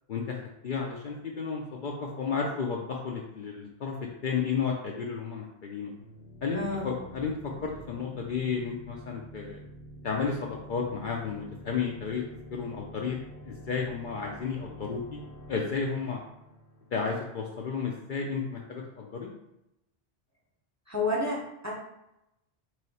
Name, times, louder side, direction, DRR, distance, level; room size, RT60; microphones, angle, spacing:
voice 1, 0.6-4.0 4.2-5.9 6.4-9.6 10.0-12.2 12.5-13.2 13.4-15.2 15.5-16.2 16.9-19.3, left 5 dB, 60° left, -1 dB, 0.6 m, -32 dB
sound 1, 6.0-17.6, right 1 dB, 80° left, 1.0 m, -47 dB
voice 2, 6.5-6.8 20.9-21.7, left 2 dB, 15° right, -4 dB, 0.8 m, -30 dB
3.1 x 2.7 x 4.1 m, 0.86 s
omnidirectional pair, 1.1 m